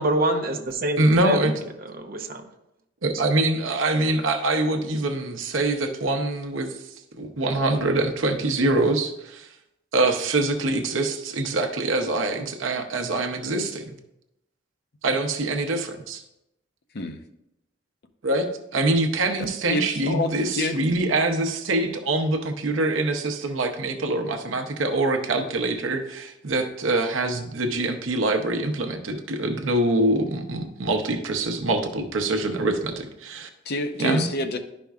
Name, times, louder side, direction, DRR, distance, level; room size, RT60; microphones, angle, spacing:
voice 1, 0.0-1.5 1.9-2.4, right 1 dB, 50° right, 4 dB, 0.8 m, -26 dB
voice 2, 1.0-1.5 3.0-6.8 7.1-9.5 9.9-14.0 15.0-16.2 18.2-18.5 18.7-33.5 34.0-34.3, right 2 dB, 85° right, 5 dB, 0.8 m, -24 dB
voice 3, 19.4-20.8 33.7-34.6, left 2 dB, 55° left, 6 dB, 0.7 m, -28 dB
11.5 x 5.2 x 2.3 m, 0.86 s
head